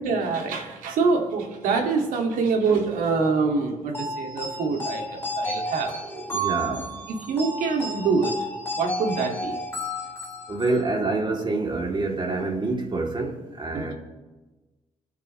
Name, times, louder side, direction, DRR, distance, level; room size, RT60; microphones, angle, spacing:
voice 1, 0.0-6.0 6.5-6.8 7.1-8.3 8.7-9.6 13.7-13.9, right 4 dB, 85° right, 2.3 m, -25 dB
sound 1, 3.9-10.8, equal, 15° left, 3.8 m, -32 dB
voice 2, 6.1-6.9 10.5-13.9, right 3 dB, 35° right, 3.0 m, -27 dB
25.5 x 9.7 x 3.3 m
supercardioid pair, 60°, 14 cm